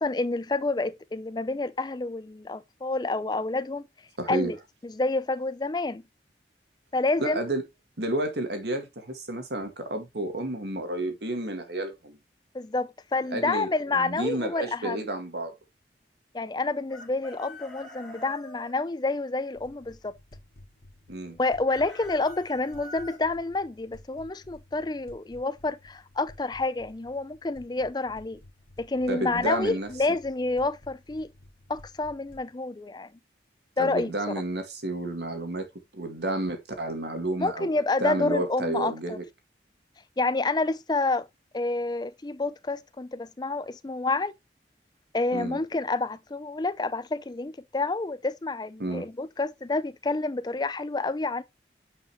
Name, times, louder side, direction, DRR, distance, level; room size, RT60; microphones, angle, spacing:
voice 1, 0.0-3.8 4.3-4.6 4.8-6.0 6.9-7.4 12.5-15.1 16.3-20.1 21.4-28.4 28.8-31.3 31.7-33.1 33.8-34.1 37.4-39.2 40.2-41.3 41.5-44.3 45.1-51.4, left 3 dB, 25° left, 0.4 m, -28 dB
voice 2, 4.2-4.5 7.2-7.6 8.0-12.2 13.3-15.5 21.1-21.4 29.1-29.9 33.8-35.7 35.9-37.7 38.0-39.2 45.3-45.6 48.8-49.1, right 1 dB, 65° right, 1.8 m, -31 dB
Chicken rooster, 16.9-18.7 21.4-23.2, left 2 dB, 5° left, 2.1 m, -45 dB
sound 1, 19.5-32.5, left 1 dB, 55° left, 2.3 m, -53 dB
8.6 x 5.6 x 3.0 m
head